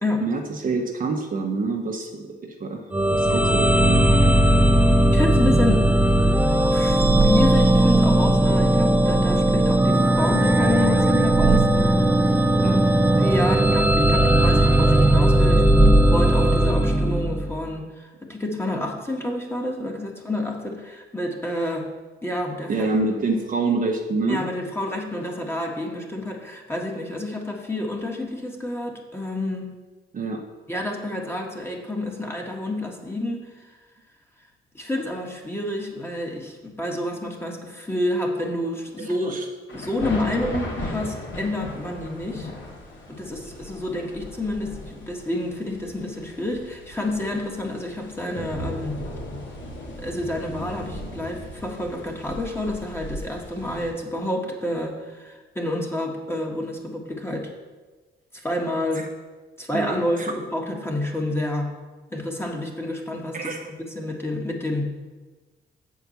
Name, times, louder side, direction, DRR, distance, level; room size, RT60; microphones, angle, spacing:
voice 1, 0.2-4.1 12.2-12.3 12.6-12.9 22.7-24.4 30.1-30.4 39.0-39.4 59.7-60.3 63.3-63.6, right 3 dB, 45° right, 2 dB, 1.0 m, -27 dB
sound 1, 2.9-17.6, right 1 dB, 10° right, 0.6 m, -18 dB
voice 2, 5.1-5.9 6.7-12.3 13.2-21.9 22.2-22.9 24.3-29.7 30.7-33.8 34.7-39.4 39.7-42.5 43.1-49.0 50.0-57.5 58.3-59.1 59.6-61.7 62.1-64.9, left 1 dB, 10° left, 0 dB, 1.6 m, -29 dB
sound 2, 39.7-53.9, left 1 dB, 70° left, 2.6 m, -37 dB
7.8 x 4.7 x 7.1 m, 1.3 s
cardioid pair, 90°, 20 cm